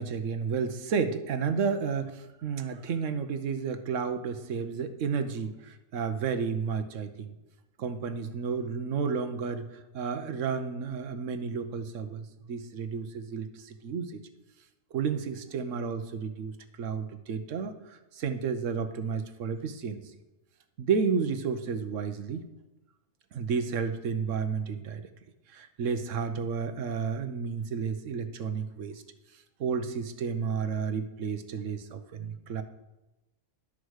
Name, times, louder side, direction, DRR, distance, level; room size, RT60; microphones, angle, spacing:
voice 1, 0.0-7.3 7.8-9.7 9.9-14.2 14.9-20.0 20.8-22.4 23.3-25.1 25.5-29.0 29.6-32.6, right 6 dB, 80° right, 9 dB, 1.2 m, -32 dB
11.5 x 4.8 x 6.4 m, 1.0 s
omnidirectional pair, 1.3 m